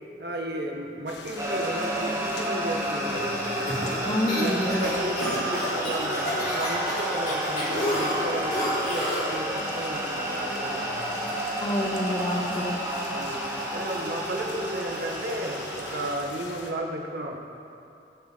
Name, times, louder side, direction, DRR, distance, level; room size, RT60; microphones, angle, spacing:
voice 1, 0.2-3.6 4.3-11.2 13.1-13.4 13.7-17.4, right 1 dB, 65° right, 1 dB, 1.5 m, -34 dB
sound 1, 1.1-16.7, left 3 dB, 90° left, 1.3 m, -42 dB
sound 2, 1.4-16.1, right 1 dB, 15° right, 1.8 m, -30 dB
sound 3, 3.4-9.3, equal, 40° left, 3.1 m, -30 dB
voice 2, 4.0-4.9 11.6-12.8, left 1 dB, 25° left, 3 dB, 0.8 m, -27 dB
22.0 x 7.6 x 4.1 m, 2.7 s
head